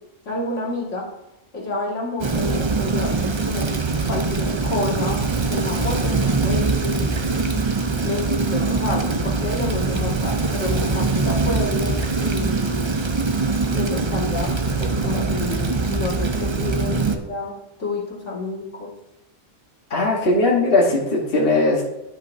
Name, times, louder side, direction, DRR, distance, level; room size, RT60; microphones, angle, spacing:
voice 1, 0.3-1.1 1.5-3.7 4.0-7.1 8.0-12.9 13.7-18.9, left 2 dB, 70° left, -4 dB, 2.4 m, -29 dB
Rain, 2.2-17.2, right 3 dB, 40° right, 0.4 m, -23 dB
voice 2, 19.9-21.8, left 2 dB, 50° left, -3 dB, 1.5 m, -19 dB
12.0 x 5.3 x 2.7 m, 0.89 s
omnidirectional pair, 1.3 m